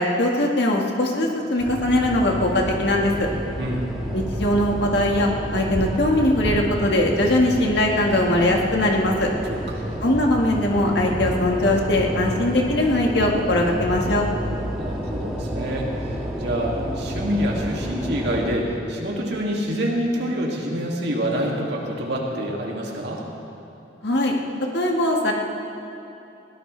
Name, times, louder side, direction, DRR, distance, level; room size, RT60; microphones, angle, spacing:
voice 1, 0.0-3.3 4.1-9.3 10.0-14.3 24.0-24.3 24.7-25.3, left 1 dB, 65° left, 0 dB, 1.8 m, -21 dB
sound 1, 1.6-18.6, equal, ahead, 2.1 m, -30 dB
voice 2, 9.5-9.9 14.7-23.2, equal, 65° right, -2 dB, 2.5 m, -27 dB
20.5 x 17.5 x 3.4 m, 2.8 s
head